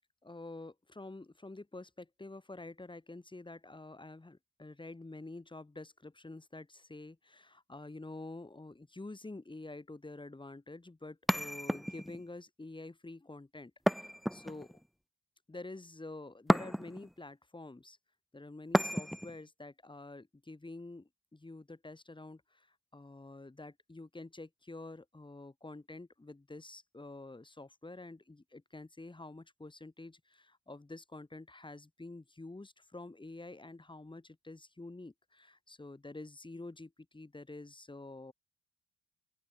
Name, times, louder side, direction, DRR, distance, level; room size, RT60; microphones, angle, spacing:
voice 1, 0.2-14.7 15.5-18.0 18.3-38.3, left 2 dB, 15° left, 4.6 m, -48 dB
sound 1, 11.3-12.2 13.9-14.8 16.5-17.1 18.7-19.4, equal, ahead, 0.9 m, -31 dB
open air
cardioid pair, 90°, 30 cm